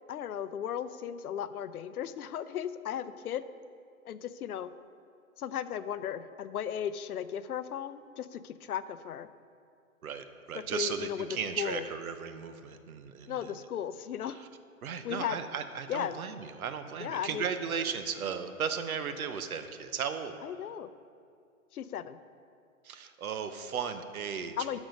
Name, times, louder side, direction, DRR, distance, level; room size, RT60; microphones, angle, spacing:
voice 1, 0.1-3.4 4.1-4.7 5.4-9.3 10.7-11.3 11.6-11.8 13.3-14.4 15.0-15.4 15.9-16.2 17.0-17.5 20.4-20.9 21.7-22.2 24.6-24.8, left 9 dB, 90° left, 13 dB, 0.7 m, -36 dB
voice 2, 10.0-13.6 14.3-14.5 14.8-20.3 22.8-24.8, right 7 dB, 75° right, 9 dB, 0.9 m, -36 dB
10.5 x 6.2 x 5.2 m, 2.4 s
hypercardioid pair, 160°, 43 cm